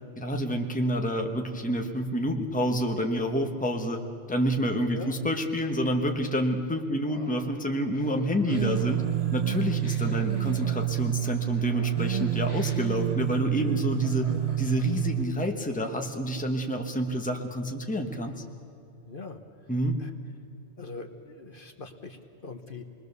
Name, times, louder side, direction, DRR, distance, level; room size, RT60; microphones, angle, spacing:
voice 1, 0.2-4.0 4.3-9.0 9.3-14.3 14.6-18.4 19.7-20.0, equal, 5° left, 4 dB, 1.2 m, -28 dB
Laughter, 7.0-15.1, equal, 60° right, 8.1 m, -49 dB
sound 1, 8.5-15.2, right 12 dB, 40° right, 0.6 m, -28 dB
voice 2, 19.1-19.4 20.0-20.1 20.8-22.8, left 3 dB, 50° left, 6 dB, 1.3 m, -42 dB
27.5 x 20.5 x 6.8 m, 2.7 s
omnidirectional pair, 1.2 m